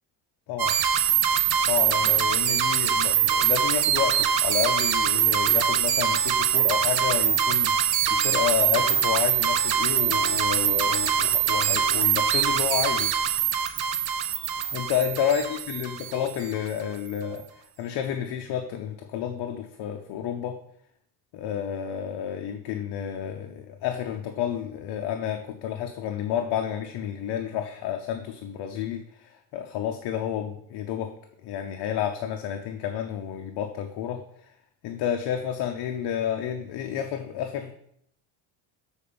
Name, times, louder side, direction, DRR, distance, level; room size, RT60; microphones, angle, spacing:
sound 1, 0.6-16.5, right 8 dB, 60° right, 1.0 m, -23 dB
voice 1, 1.7-13.1 14.7-20.6 21.3-31.1 31.4-34.2 34.8-37.7, left 9 dB, 65° left, 4 dB, 0.9 m, -30 dB
7.2 x 4.5 x 6.9 m, 0.69 s
cardioid pair, 115°, 42 cm